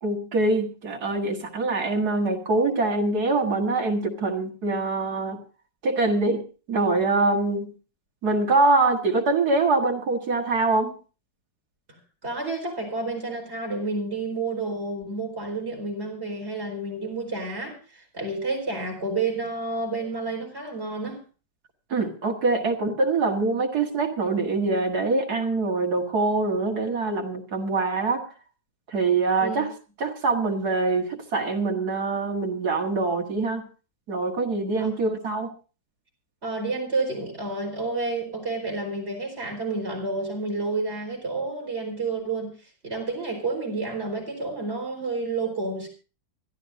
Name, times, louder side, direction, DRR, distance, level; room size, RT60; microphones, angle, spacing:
voice 1, 0.0-5.4 5.8-7.7 8.2-10.9 21.9-28.3 28.9-29.7 30.0-33.6 34.1-35.5, right 3 dB, 60° right, 2.2 m, -24 dB
voice 2, 12.2-21.2 29.4-29.6 34.8-34.9 36.4-42.5 42.8-45.9, right 3 dB, 35° right, 5.0 m, -30 dB
25.0 x 12.0 x 2.6 m
omnidirectional pair, 2.0 m